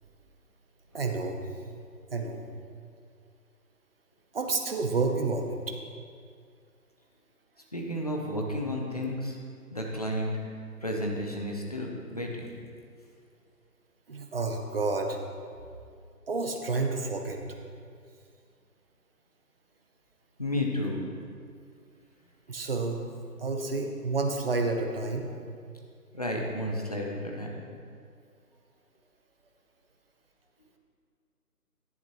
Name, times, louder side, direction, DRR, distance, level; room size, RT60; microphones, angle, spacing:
voice 1, 0.9-1.4 2.1-2.4 4.3-5.8 14.1-15.2 16.3-17.4 22.5-25.3, right 3 dB, 35° right, 3 dB, 0.8 m, -30 dB
voice 2, 7.7-9.4 9.7-10.3 10.8-12.5 20.4-21.0 26.1-27.6, left 1 dB, 25° left, 0 dB, 0.6 m, -32 dB
10.5 x 9.5 x 3.0 m, 2.3 s
figure-of-eight pair, 165°, 47 cm